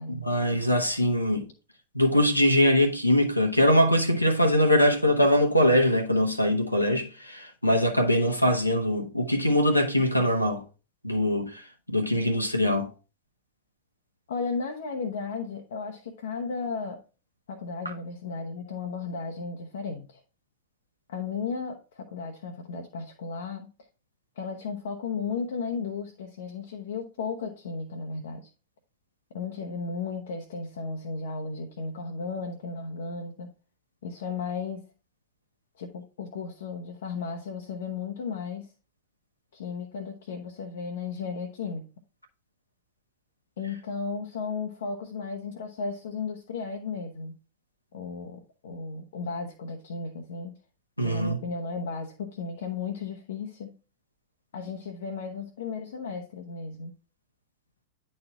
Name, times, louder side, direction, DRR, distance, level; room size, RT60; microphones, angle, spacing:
voice 1, 0.1-1.5 1.9-10.6 11.0-12.9 51.0-51.4, equal, 90° left, 0.9 m, -22 dB
voice 2, 14.3-17.0 17.5-20.2 21.1-23.7 24.4-28.5 29.3-33.5 34.0-34.9 35.8-38.7 39.5-41.8 43.6-47.4 47.9-50.5 51.0-53.7 54.5-56.9, left 4 dB, 60° left, 0.8 m, -34 dB
9.5 x 4.3 x 3.6 m
figure-of-eight pair, 90°, 0 cm